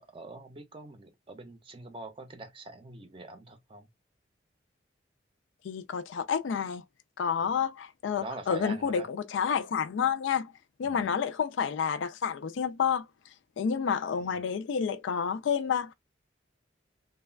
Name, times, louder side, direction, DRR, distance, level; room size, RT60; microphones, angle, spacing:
voice 1, 0.0-3.9 7.4-7.5 8.1-9.1 10.8-11.1 14.1-14.5, right 2 dB, 30° right, 0.5 m, -44 dB
voice 2, 5.6-6.8 7.2-10.5 10.8-13.1 13.6-15.9, left 7 dB, 85° left, 0.3 m, -29 dB
3.2 x 2.2 x 2.2 m
head